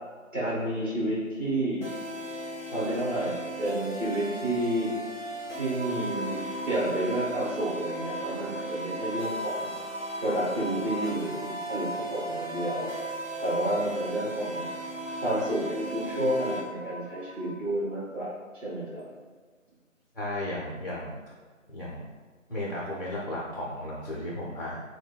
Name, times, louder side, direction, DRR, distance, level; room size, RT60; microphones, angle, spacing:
voice 1, 0.3-1.8 2.7-4.9 5.5-9.7 10.2-12.9 13.4-14.6 15.2-19.0, right 1 dB, 40° right, -8 dB, 1.2 m, -30 dB
sound 1, 1.8-16.6, right 1 dB, 20° left, 1.1 m, -37 dB
sound 2, 5.8-17.5, equal, 85° right, 0.8 m, -39 dB
voice 2, 20.1-21.2 21.7-22.1 22.5-24.8, left 1 dB, 45° left, -5 dB, 0.6 m, -34 dB
5.9 x 2.1 x 2.2 m, 1.5 s
figure-of-eight pair, 165°, 40 cm